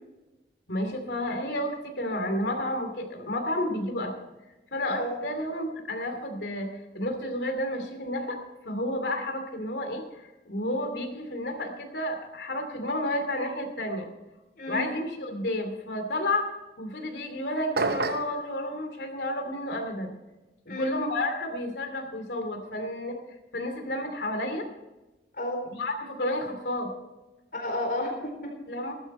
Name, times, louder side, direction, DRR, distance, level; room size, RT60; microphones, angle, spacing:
voice 1, 0.7-4.1 4.7-8.4 8.6-14.1 14.7-16.5 16.8-20.1 20.7-23.2 23.5-24.7 25.7-26.9 28.7-28.9, left 1 dB, 80° left, 5 dB, 2.6 m, -31 dB
voice 2, 14.6-14.9 20.7-20.9 25.4-25.6 27.5-28.5, left 1 dB, 50° left, 1 dB, 4.1 m, -31 dB
sound 1, 17.8-18.4, right 3 dB, 60° right, 0.7 m, -27 dB
15.0 x 12.0 x 4.3 m, 1.1 s
head